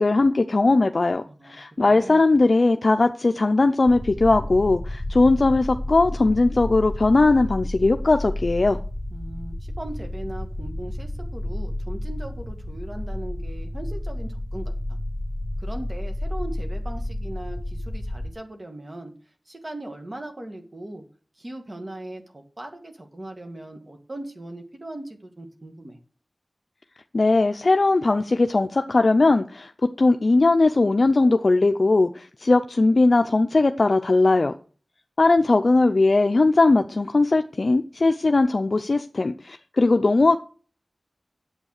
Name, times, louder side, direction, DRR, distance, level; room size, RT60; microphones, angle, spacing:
voice 1, 0.0-8.8 27.1-29.7 30.0-34.5 35.2-40.4, left 3 dB, 60° left, 0.5 m, -19 dB
voice 2, 1.3-2.2 9.1-14.7 15.6-19.1 19.5-21.0 21.4-26.0, right 1 dB, 45° right, 1.9 m, -39 dB
sound 1, 3.9-18.3, left 1 dB, 20° left, 1.9 m, -31 dB
8.8 x 7.9 x 6.5 m
wide cardioid pair, 65°, 0 cm